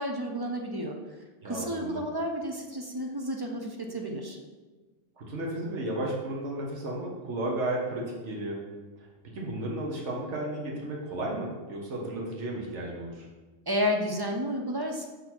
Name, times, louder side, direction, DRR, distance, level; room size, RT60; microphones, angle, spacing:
voice 1, 0.0-4.4 13.7-15.1, equal, 35° right, 2 dB, 0.4 m, -31 dB
voice 2, 1.4-2.0 5.2-8.6 9.0-13.3, right 1 dB, 75° right, -2 dB, 1.4 m, -33 dB
6.3 x 4.0 x 4.4 m, 1.3 s
omnidirectional pair, 1.2 m